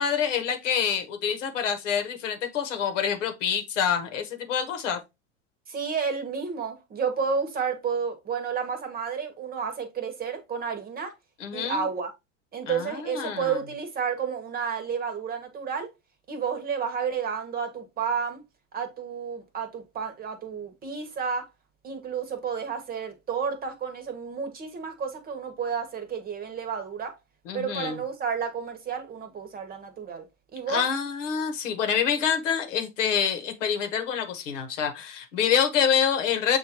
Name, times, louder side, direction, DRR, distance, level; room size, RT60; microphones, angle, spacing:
voice 1, 0.0-5.0 11.4-11.9 12.7-13.6 27.4-28.0 30.7-36.6, left 7 dB, 80° left, 1.2 m, -26 dB
voice 2, 5.7-11.1 11.5-12.1 12.5-15.9 16.3-18.4 18.7-21.5 21.8-27.1 27.5-30.2 30.5-30.8, right 6 dB, 25° right, 1.0 m, -31 dB
6.7 x 2.6 x 2.8 m
hypercardioid pair, 115°, 36 cm